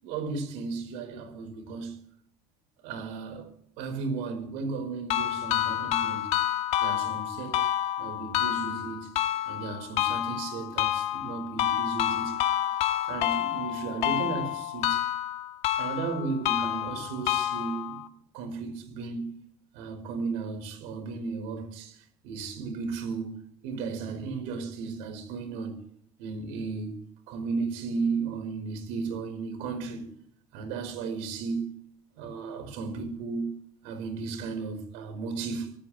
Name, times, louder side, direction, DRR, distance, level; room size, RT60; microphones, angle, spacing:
voice 1, 0.0-2.0 2.8-6.3 6.8-7.7 8.0-9.2 9.4-12.4 13.1-15.1 15.8-18.0 18.3-19.3 19.7-25.8 26.2-27.0 27.3-30.1 30.5-31.7 32.2-33.5 33.8-35.7, right 4 dB, 90° right, 5.1 m, -34 dB
sound 1, 5.1-18.1, left 12 dB, 65° left, 1.7 m, -29 dB
25.5 x 14.0 x 3.4 m
cardioid pair, 140°, 12 cm